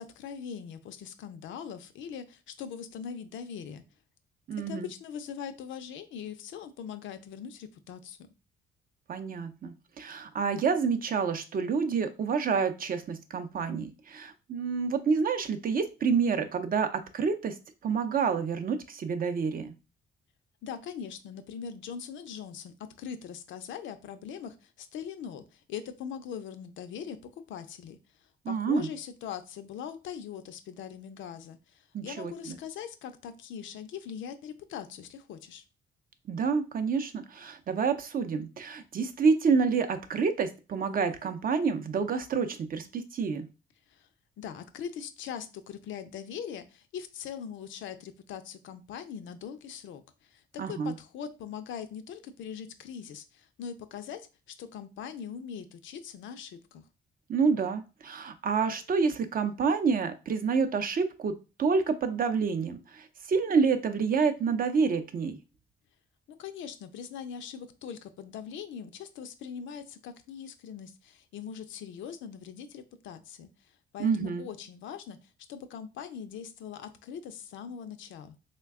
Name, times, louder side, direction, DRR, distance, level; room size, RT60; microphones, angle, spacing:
voice 1, 0.0-3.8 4.7-8.2 20.6-27.2 27.5-35.6 43.9-44.1 44.4-56.8 66.4-73.5 73.9-78.4, left 7 dB, 75° left, 9 dB, 0.5 m, -41 dB
voice 2, 4.5-4.9 9.1-17.5 17.8-19.7 28.5-28.9 31.9-32.6 36.3-43.5 50.6-50.9 57.3-61.3 61.6-65.4 74.0-74.5, right 5 dB, 45° right, 8 dB, 0.5 m, -28 dB
3.3 x 2.2 x 3.5 m, 0.31 s
cardioid pair, 90°, 20 cm